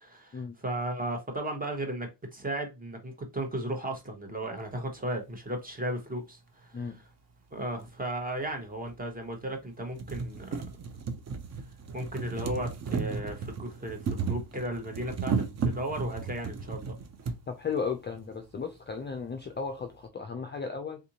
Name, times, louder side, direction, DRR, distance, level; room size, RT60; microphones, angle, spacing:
voice 1, 0.0-7.1 7.5-10.5 11.9-16.9, right 1 dB, 20° right, 1.0 m, -35 dB
sound 1, 7.8-7.9 8.9-9.0 9.4-9.5 9.8-17.4 18.3-18.4 18.6-18.7, right 5 dB, 35° right, 0.5 m, -34 dB
voice 2, 17.5-21.0, left 5 dB, 25° left, 0.4 m, -35 dB
3.6 x 2.6 x 2.8 m
cardioid pair, 110°, 48 cm